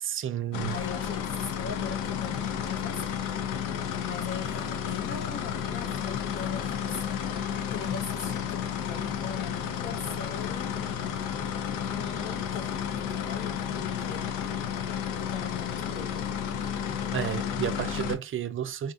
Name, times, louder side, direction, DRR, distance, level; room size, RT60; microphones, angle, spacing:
voice 1, 0.0-0.8 17.1-18.9, right 10 dB, 40° right, 0.5 m, -31 dB
sound 1, 0.5-18.2, left 8 dB, 80° left, 0.6 m, -32 dB
voice 2, 0.7-3.3 4.0-7.3 7.7-10.7 11.8-14.3 15.1-16.3, left 6 dB, 40° left, 0.6 m, -40 dB
3.7 x 2.4 x 2.5 m
cardioid pair, 95°, 31 cm